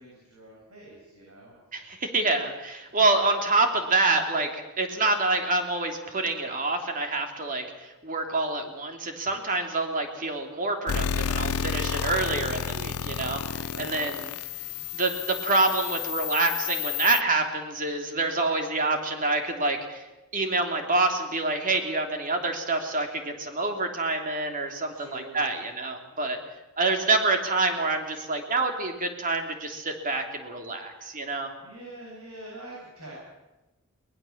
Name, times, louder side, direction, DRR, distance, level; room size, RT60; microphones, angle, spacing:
voice 1, 0.0-1.5 13.7-14.9 24.9-25.4 31.6-33.1, right 1 dB, 80° right, -4 dB, 7.8 m, -45 dB
voice 2, 1.7-14.2 14.9-20.0 20.3-26.4 26.8-31.5, right 3 dB, 40° right, 4 dB, 3.1 m, -27 dB
sound 1, 10.9-17.2, left 7 dB, 85° left, 0.6 m, -31 dB
22.0 x 20.0 x 7.3 m, 1.1 s
head